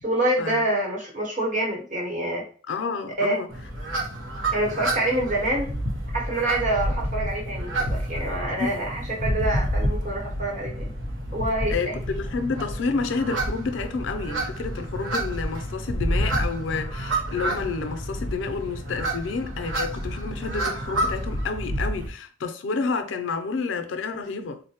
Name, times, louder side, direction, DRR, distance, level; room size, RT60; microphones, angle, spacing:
voice 1, 0.0-2.4 3.2-3.4 4.5-5.7 6.1-10.9 11.3-12.0, right 1 dB, 45° right, 1.0 m, -26 dB
voice 2, 2.7-3.5 8.4-8.8 11.7-24.6, left 4 dB, 80° left, 0.4 m, -30 dB
sound 1, 3.5-22.1, right 1 dB, 90° right, 0.8 m, -29 dB
3.8 x 2.0 x 2.8 m
head